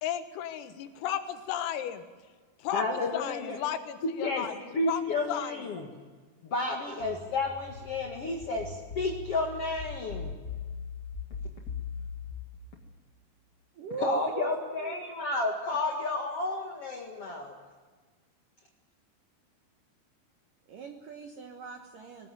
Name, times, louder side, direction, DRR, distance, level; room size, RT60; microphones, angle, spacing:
voice 1, 0.0-2.0 2.6-2.8 3.1-5.0 5.3-5.7, left 10 dB, 85° left, 8 dB, 4.2 m, -34 dB
voice 2, 2.7-3.6 4.2-4.4 4.7-5.9 6.4-10.3 14.0-17.5, left 3 dB, 65° left, 0 dB, 1.4 m, -31 dB
sound 1, 7.0-12.3, left 6 dB, 45° left, 1.2 m, -40 dB
voice 3, 13.8-15.0 20.7-22.3, right 5 dB, 70° right, 4 dB, 2.0 m, -38 dB
21.0 x 20.0 x 9.2 m, 1.4 s
omnidirectional pair, 5.9 m